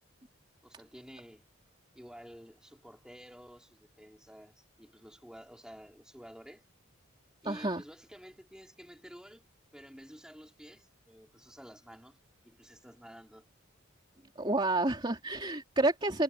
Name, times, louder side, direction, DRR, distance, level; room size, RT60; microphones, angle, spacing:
voice 1, 0.6-1.4 2.0-6.6 7.4-9.4 9.7-12.2 12.4-13.5, equal, 5° right, 5.2 m, -51 dB
voice 2, 7.4-7.8 14.3-16.2, right 2 dB, 25° right, 3.1 m, -29 dB
head